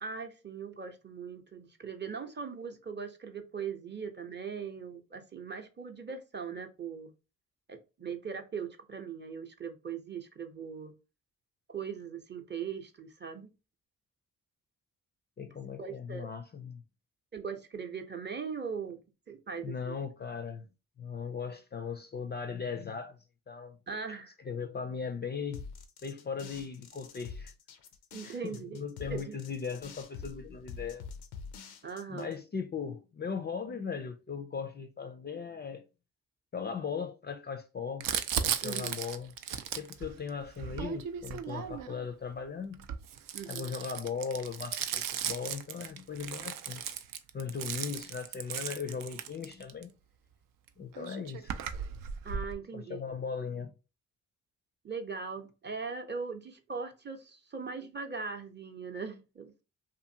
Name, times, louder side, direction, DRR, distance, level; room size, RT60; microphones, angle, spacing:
voice 1, 0.0-7.1 7.7-10.9 11.7-13.5 15.8-16.3 17.3-19.0 19.3-19.9 23.9-24.3 28.1-28.8 29.1-29.4 31.8-32.3 38.6-39.0 43.3-43.7 52.2-53.0 54.8-59.6, right 6 dB, 30° right, 0.7 m, -40 dB
voice 2, 15.4-16.8 19.6-20.7 21.0-23.2 23.5-23.8 24.4-25.6 26.0-27.5 28.2-31.0 32.1-35.8 36.5-38.1 38.4-39.3 39.7-42.9 43.5-46.9 47.3-49.9 50.8-51.5 52.7-53.7, left 6 dB, 30° left, 0.4 m, -38 dB
sound 1, 25.5-32.3, left 5 dB, 90° left, 0.5 m, -46 dB
Crumpling crinkling, 38.0-42.0 42.7-49.8 50.7-50.8 50.9-52.5, right 8 dB, 65° right, 0.5 m, -36 dB
2.5 x 2.5 x 2.7 m
supercardioid pair, 50°, 36 cm